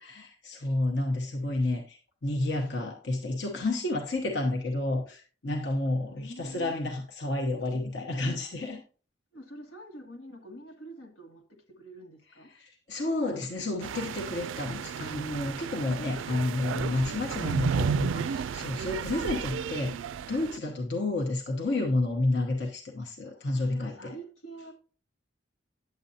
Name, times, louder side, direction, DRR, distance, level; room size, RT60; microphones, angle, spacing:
voice 1, 0.0-8.8 12.5-20.0 20.3-23.9, left 2 dB, 60° left, 1.0 m, -30 dB
voice 2, 5.9-6.7 9.3-12.5 23.2-24.7, right 1 dB, 85° left, 1.8 m, -46 dB
sound 1, 13.8-20.6, right 7 dB, 80° right, 0.3 m, -33 dB
9.5 x 7.7 x 2.8 m
head